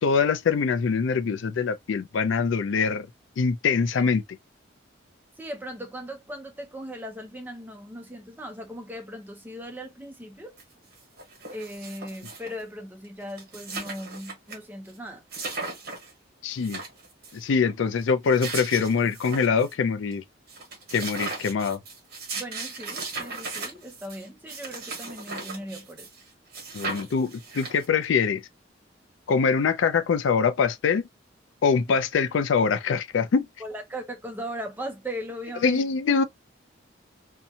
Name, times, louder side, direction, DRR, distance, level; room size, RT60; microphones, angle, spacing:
voice 1, 0.0-3.1 3.4-4.2 16.4-16.8 17.3-20.2 20.9-21.8 26.7-28.4 29.3-31.0 31.6-33.5 35.6-36.2, left 5 dB, 90° left, 0.4 m, -23 dB
voice 2, 5.4-10.6 11.5-15.2 22.3-26.1 31.9-32.0 33.6-35.9, equal, 10° right, 0.6 m, -38 dB
sound 1, 10.6-10.7 10.9-12.6 13.0-13.1 13.3-14.6 14.9-15.0 15.3-16.1 16.5-17.4 18.1-19.7 20.1-20.2 20.5-26.2 26.5-28.0, right 3 dB, 55° right, 1.2 m, -37 dB
2.7 x 2.2 x 2.6 m
head